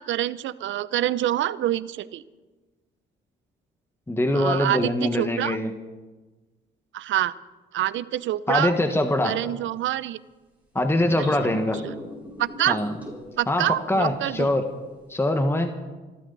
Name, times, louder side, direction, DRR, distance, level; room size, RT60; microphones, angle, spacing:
voice 1, 0.0-2.2 4.3-5.6 6.9-7.3 7.7-8.7 9.2-10.2 11.4-11.5 11.8-11.9 12.4-12.8 13.4-14.5, right 13 dB, 75° right, 17 dB, 0.7 m, -26 dB
voice 2, 4.1-5.7 8.5-9.4 10.7-11.8 12.7-13.0 13.5-14.6 15.1-15.7, left 1 dB, 10° left, 6 dB, 1.5 m, -23 dB
sound 1, 10.9-13.4, equal, 10° right, 5.2 m, -39 dB
26.0 x 13.0 x 4.1 m, 1.2 s
cardioid pair, 90°, 20 cm